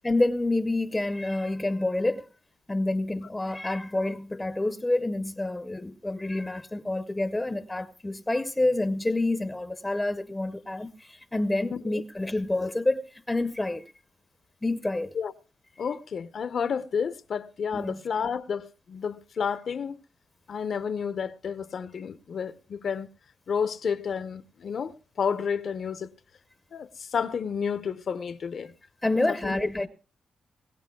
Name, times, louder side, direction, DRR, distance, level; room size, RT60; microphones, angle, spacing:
voice 1, 0.0-2.3 2.7-13.8 14.6-15.1 17.7-18.0 29.0-29.9, left 2 dB, 15° left, 0.7 m, -28 dB
voice 2, 11.7-12.0 15.1-15.3 15.8-20.0 20.5-23.1 23.5-26.1 26.7-28.7 29.3-29.7, left 6 dB, 60° left, 0.8 m, -31 dB
21.5 x 17.5 x 2.3 m
cardioid pair, 115°, 0 cm